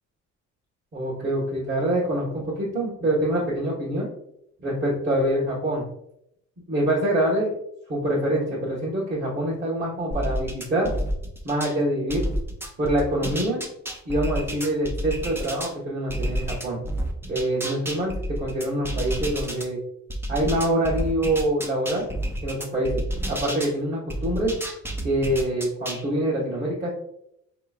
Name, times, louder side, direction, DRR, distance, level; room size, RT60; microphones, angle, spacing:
voice 1, 0.9-4.1 4.6-5.8 6.7-7.5 7.9-10.9 11.4-12.3 12.8-13.6 14.0-16.8 17.3-19.8 20.3-22.1 22.4-24.5 25.0-26.9, right 1 dB, 35° right, -7 dB, 1.2 m, -25 dB
sound 1, 10.1-11.8 12.1-15.7 16.1-19.7 20.1-23.7 24.1-26.0, right 1 dB, 10° right, 0.6 m, -30 dB
4.5 x 3.0 x 2.3 m, 0.78 s
cardioid pair, 90°, 30 cm